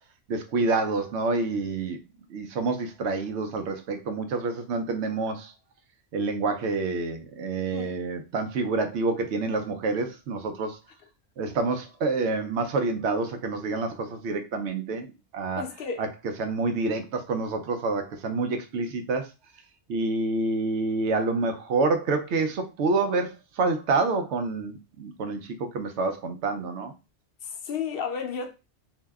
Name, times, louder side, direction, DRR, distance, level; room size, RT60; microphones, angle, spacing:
voice 1, 0.3-2.0 2.3-5.5 6.1-10.8 11.4-15.6 16.0-16.1 16.4-19.3 19.9-26.9, right 3 dB, 70° right, 0.9 m, -28 dB
voice 2, 15.6-16.1 27.4-28.5, left 6 dB, 60° left, 0.7 m, -32 dB
2.7 x 2.1 x 3.4 m
omnidirectional pair, 1.2 m